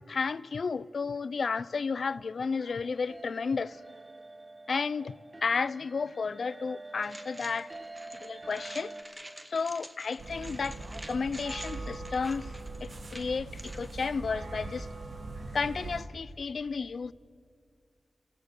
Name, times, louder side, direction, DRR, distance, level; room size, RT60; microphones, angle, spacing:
voice 1, 0.1-3.8 4.7-5.1 5.4-7.7 8.2-8.9 9.5-12.5 12.8-14.9 15.5-17.1, left 5 dB, 80° left, 0.5 m, -32 dB
sound 1, 2.6-9.0, right 2 dB, 40° right, 1.6 m, -47 dB
sound 2, 7.0-13.9, right 1 dB, 20° right, 1.9 m, -47 dB
sound 3, 10.2-16.0, right 2 dB, 65° right, 1.8 m, -41 dB
28.0 x 16.5 x 6.6 m
cardioid pair, 55°, 0 cm